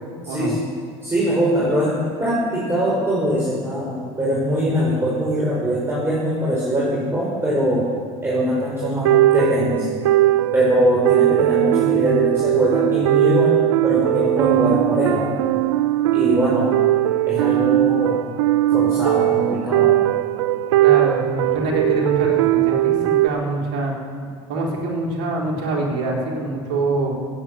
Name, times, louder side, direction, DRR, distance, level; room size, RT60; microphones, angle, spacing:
voice 1, 0.2-0.6 1.0-7.9 8.2-9.9 10.5-15.3 16.1-16.8 17.3-18.2 18.7-20.0, equal, 15° right, -6 dB, 5.0 m, -22 dB
sound 1, 8.8-23.3, right 15 dB, 85° right, 0.4 m, -19 dB
voice 2, 20.8-23.9 24.5-27.1, right 2 dB, 65° right, -1 dB, 4.4 m, -24 dB
16.5 x 8.9 x 7.7 m, 2.2 s
hypercardioid pair, 85°, 15 cm